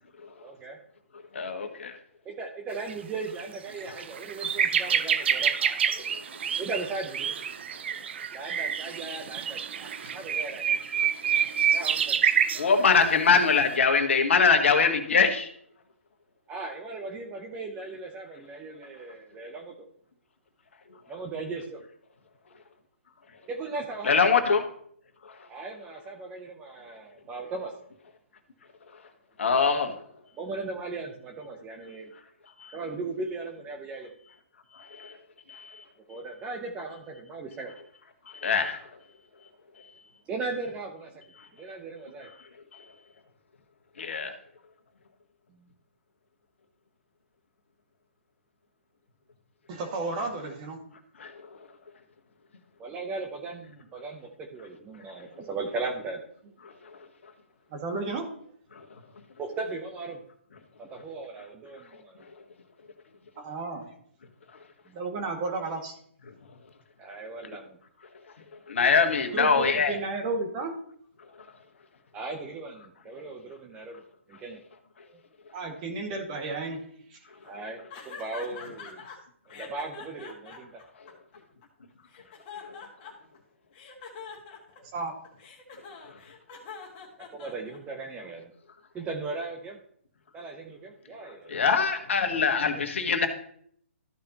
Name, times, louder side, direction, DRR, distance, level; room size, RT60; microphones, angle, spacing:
voice 1, 0.4-0.8 2.2-5.9 6.6-7.4 8.3-10.8 11.7-12.2 16.5-19.7 21.1-21.8 23.5-24.1 25.5-27.7 30.4-32.1 32.7-34.1 36.1-37.7 40.3-41.1 41.5-42.3 45.5-45.7 52.8-56.2 59.4-60.2 60.8-62.2 64.9-65.0 67.0-67.8 72.1-74.0 74.3-74.6 77.4-77.8 78.0-79.2 79.5-80.8 87.3-88.5 88.9-89.8 90.3-91.5 92.7-92.8, right 3 dB, 15° right, 2 dB, 0.8 m, -37 dB
voice 2, 1.3-1.9 6.1-6.2 12.6-15.5 24.0-24.6 29.4-29.9 32.6-32.7 34.7-35.1 35.5-35.8 38.3-38.8 42.7-42.8 44.0-44.3 51.2-51.3 68.7-69.9 91.5-93.3, left 5 dB, 65° left, 6 dB, 1.4 m, -23 dB
sound 1, 2.8-2.9 3.4-3.5 3.8-12.6 13.4-13.6, right 8 dB, 55° right, 0.6 m, -27 dB
voice 3, 49.7-50.8 57.7-58.2 63.4-63.9 64.9-65.9 69.3-70.7 75.5-76.8 77.1-77.2 84.9-85.1, right 3 dB, 35° right, 3 dB, 2.0 m, -32 dB
sound 2, 77.9-79.2 79.5-81.6 82.1-83.4 83.7-88.0, left 6 dB, 30° left, 1.9 m, -44 dB
13.5 x 5.2 x 2.9 m, 0.63 s
hypercardioid pair, 140°, 7 cm